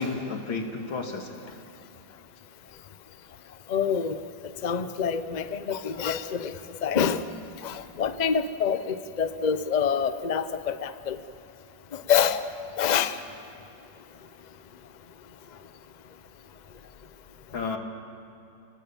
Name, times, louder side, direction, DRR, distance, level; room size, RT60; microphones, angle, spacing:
voice 1, 0.0-1.5 17.5-17.8, left 4 dB, 85° left, 3 dB, 3.0 m, -32 dB
voice 2, 3.7-4.2 4.6-7.2 7.6-11.2 11.9-12.4 12.8-13.2, left 7 dB, 60° left, 11 dB, 0.4 m, -26 dB
30.0 x 18.5 x 7.3 m, 2.9 s
omnidirectional pair, 2.1 m